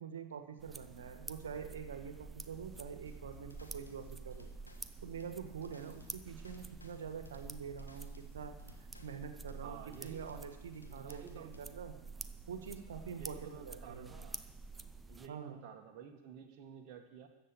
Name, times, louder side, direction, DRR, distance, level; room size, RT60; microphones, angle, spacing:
voice 1, 0.0-4.5 5.0-8.5 9.0-11.9 12.5-14.2 15.3-15.6, right 7 dB, 65° right, 8 dB, 1.6 m, -46 dB
sound 1, 0.6-15.3, right 3 dB, 10° right, 0.6 m, -49 dB
sound 2, 3.1-11.7, left 2 dB, 80° left, 1.2 m, -61 dB
voice 2, 9.6-10.2 10.9-11.6 13.1-14.4 15.1-17.3, right 7 dB, 40° right, 2 dB, 1.6 m, -51 dB
14.0 x 7.8 x 8.4 m, 1.0 s
figure-of-eight pair, 90°, 0 cm